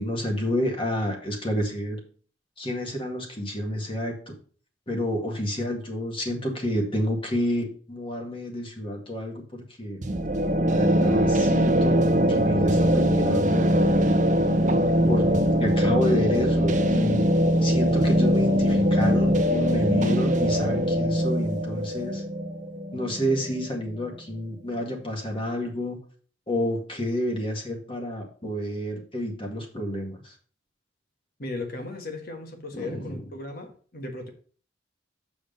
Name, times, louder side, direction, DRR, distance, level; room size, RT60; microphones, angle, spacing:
voice 1, 0.0-2.0 2.6-4.3 4.9-10.0 10.7-13.7 15.1-15.2 15.6-17.3 17.6-22.2 22.9-26.0 26.5-30.3 32.7-33.2, left 1 dB, 30° left, 1 dB, 2.0 m, -29 dB
sound 1, 10.0-23.7, equal, 40° right, 0.9 m, -22 dB
voice 2, 31.4-34.3, left 2 dB, 55° left, 5 dB, 1.6 m, -36 dB
7.1 x 5.1 x 5.2 m, 0.43 s
head